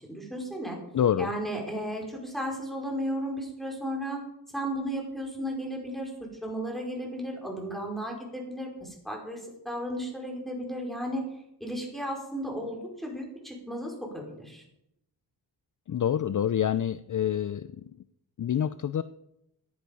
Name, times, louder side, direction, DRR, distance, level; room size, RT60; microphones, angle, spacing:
voice 1, 0.0-0.8 1.2-4.2 4.5-6.1 6.4-11.3 11.6-14.6, equal, ahead, -1 dB, 5.2 m, -34 dB
voice 2, 0.9-1.3 15.9-17.8 18.4-19.0, left 9 dB, 45° left, 14 dB, 0.5 m, -27 dB
15.0 x 10.0 x 5.4 m, 0.82 s
wide cardioid pair, 80°, 42 cm